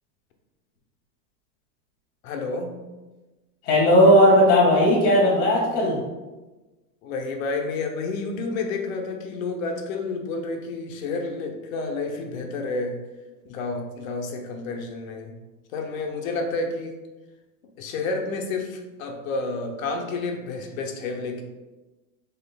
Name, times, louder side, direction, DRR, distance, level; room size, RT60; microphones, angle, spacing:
voice 1, 2.2-2.8 7.0-13.0 13.4-15.3 15.7-17.0 17.8-21.4, left 3 dB, 55° left, 3 dB, 0.8 m, -30 dB
voice 2, 3.6-5.9, equal, 10° left, -8 dB, 0.4 m, -16 dB
5.5 x 3.7 x 2.3 m, 1.2 s
supercardioid pair, 155°, 48 cm